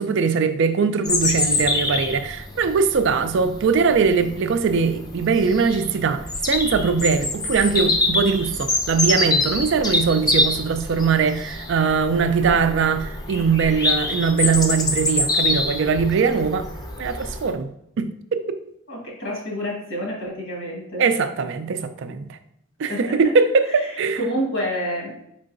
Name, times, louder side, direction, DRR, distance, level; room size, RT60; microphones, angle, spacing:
voice 1, 0.0-16.7 17.0-17.7 18.0-18.6 21.0-22.4 22.8-24.2, right 5 dB, 55° right, 0.3 m, -21 dB
Bird vocalization bird call bird song, 1.0-17.5, left 2 dB, 20° left, 0.4 m, -25 dB
voice 2, 18.9-21.0 22.9-23.0 23.7-23.9 24.2-25.2, equal, 60° left, 1.6 m, -28 dB
5.3 x 3.8 x 2.5 m
head